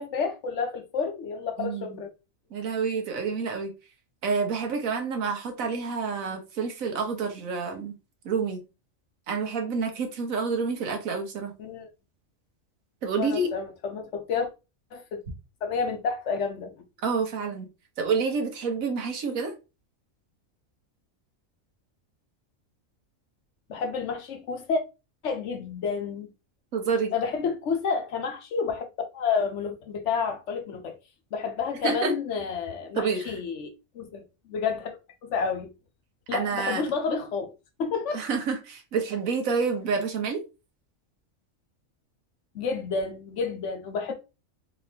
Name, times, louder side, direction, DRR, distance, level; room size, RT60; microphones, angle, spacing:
voice 1, 0.0-2.1 11.6-11.9 13.2-14.5 14.9-15.2 15.6-16.7 23.7-24.8 25.2-26.3 27.1-28.8 29.1-31.0 31.3-33.7 33.9-35.0 35.2-35.7 36.3-37.5 37.8-38.2 42.5-44.1, left 5 dB, 65° left, 1.0 m, -30 dB
voice 2, 1.6-2.0 2.5-3.7 4.2-7.9 8.2-8.6 9.3-11.5 13.0-13.5 17.0-17.7 18.0-19.5 26.7-27.1 31.8-32.1 32.9-33.3 36.3-36.8 38.1-40.4, right 5 dB, 85° right, 1.4 m, -28 dB
4.1 x 3.0 x 2.7 m
omnidirectional pair, 1.4 m